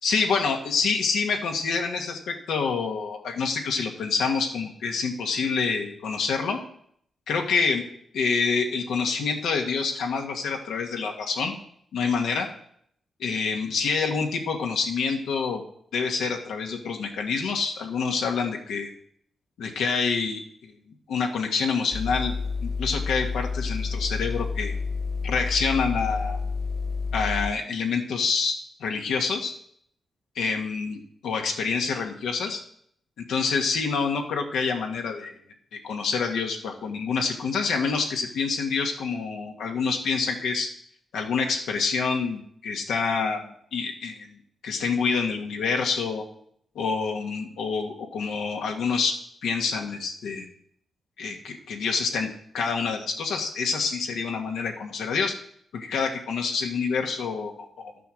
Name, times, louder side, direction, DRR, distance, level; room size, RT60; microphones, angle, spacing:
voice 1, 0.0-6.6 7.3-7.8 8.1-11.5 11.9-12.5 13.2-15.6 15.9-18.9 19.6-20.7 21.1-22.3 22.6-24.7 25.2-26.4 27.1-29.5 30.3-32.6 33.2-35.3 35.7-40.7 41.1-43.5 43.7-44.4 44.6-46.2 46.7-50.4 51.2-55.3 55.7-57.9, left 5 dB, 85° left, 2 dB, 1.6 m, -27 dB
sound 1, 21.9-27.5, left 4 dB, 60° left, 0.7 m, -29 dB
12.0 x 6.8 x 6.4 m, 0.68 s
cardioid pair, 55°, 0 cm